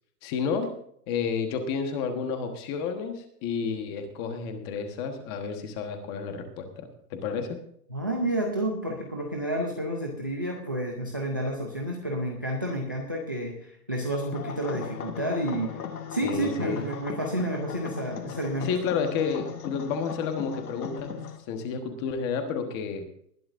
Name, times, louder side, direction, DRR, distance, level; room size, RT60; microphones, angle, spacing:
voice 1, 0.2-0.7 1.1-7.6 16.2-16.8 18.2-21.2 21.5-23.1, left 6 dB, 15° left, 6 dB, 1.2 m, -31 dB
voice 2, 7.9-15.8 16.1-18.7, right 1 dB, 15° right, 1 dB, 0.5 m, -30 dB
sound 1, 14.3-21.4, left 7 dB, 65° left, 2.1 m, -38 dB
20.0 x 11.5 x 2.6 m, 0.67 s
hypercardioid pair, 170°, 49 cm